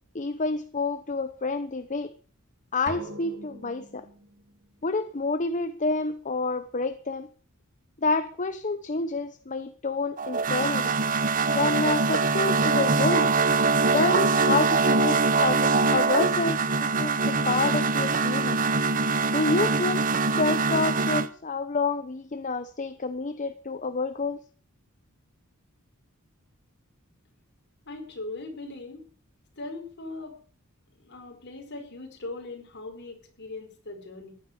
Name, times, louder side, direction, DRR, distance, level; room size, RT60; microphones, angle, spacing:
voice 1, 0.1-2.1 2.7-4.1 4.8-7.3 8.0-10.9 11.5-13.3 13.8-18.6 19.3-20.0 20.4-24.4, left 3 dB, 35° left, 10 dB, 0.9 m, -28 dB
sound 1, 2.9-4.7, right 2 dB, 60° right, 2.4 m, -42 dB
sound 2, 10.2-21.3, right 4 dB, 40° right, 1.0 m, -23 dB
voice 2, 27.9-29.0 29.6-30.3 31.0-34.3, left 2 dB, 55° left, 4 dB, 4.8 m, -39 dB
15.5 x 11.5 x 6.7 m, 0.43 s
head